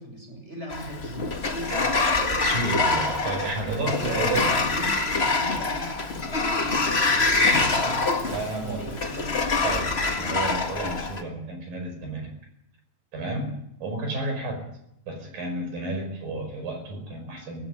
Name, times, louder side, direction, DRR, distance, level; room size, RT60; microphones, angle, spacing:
voice 1, 0.0-2.0 3.6-9.7 14.2-14.4, right 1 dB, 15° right, 3 dB, 6.7 m, -39 dB
Sliding door, 0.7-11.2, left 3 dB, 55° left, 0.6 m, -25 dB
voice 2, 2.2-4.7 7.6-8.9 9.6-12.3 13.1-14.7 15.1-17.7, right 2 dB, 65° right, 5 dB, 6.9 m, -32 dB
17.5 x 16.0 x 10.0 m, 0.81 s
omnidirectional pair, 4.2 m